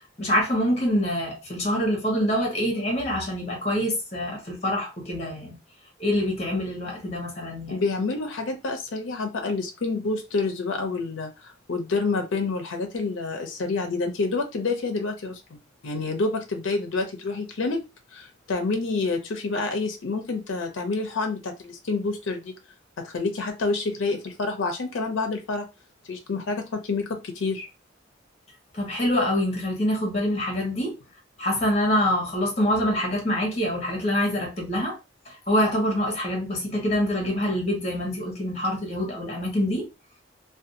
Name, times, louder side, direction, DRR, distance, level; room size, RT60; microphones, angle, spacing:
voice 1, 0.2-5.6 6.0-7.8 28.7-30.9 31.4-35.0 35.3-39.9, equal, 35° left, 1.0 m, -25 dB
voice 2, 7.7-17.8 18.1-22.5 23.0-25.7 26.1-27.7, left 3 dB, 90° left, 0.5 m, -28 dB
2.5 x 2.3 x 2.6 m
head